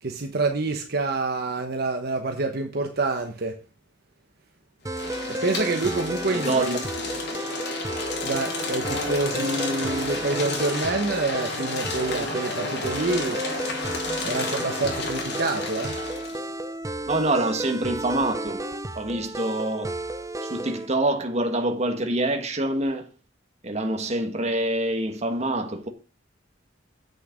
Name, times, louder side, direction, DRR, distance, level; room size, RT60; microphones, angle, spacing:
voice 1, 0.0-3.6 5.3-6.7 8.2-13.4 14.2-16.0, right 3 dB, 55° right, 1.1 m, -27 dB
sound 1, 4.9-16.4, left 3 dB, 60° left, 2.9 m, -32 dB
sound 2, 4.9-20.9, right 1 dB, 15° right, 0.6 m, -33 dB
voice 2, 6.3-6.8 17.1-18.6 18.9-20.0 20.4-23.1 23.6-25.9, right 1 dB, 35° right, 1.5 m, -26 dB
8.4 x 6.7 x 5.1 m
head